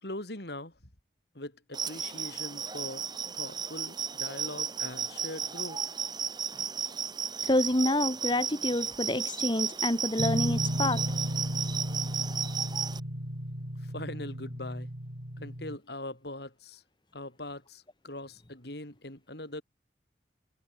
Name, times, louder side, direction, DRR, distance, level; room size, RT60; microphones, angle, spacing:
voice 1, 0.0-0.7 1.3-3.0 3.3-5.8 13.8-14.9 15.4-16.8 17.1-19.6, left 1 dB, 65° left, 4.6 m, -41 dB
sound 1, 1.7-13.0, right 6 dB, 25° right, 6.9 m, -34 dB
voice 2, 7.4-11.0, left 1 dB, 25° left, 2.0 m, -28 dB
sound 2, 10.2-15.8, equal, 70° right, 7.1 m, -34 dB
head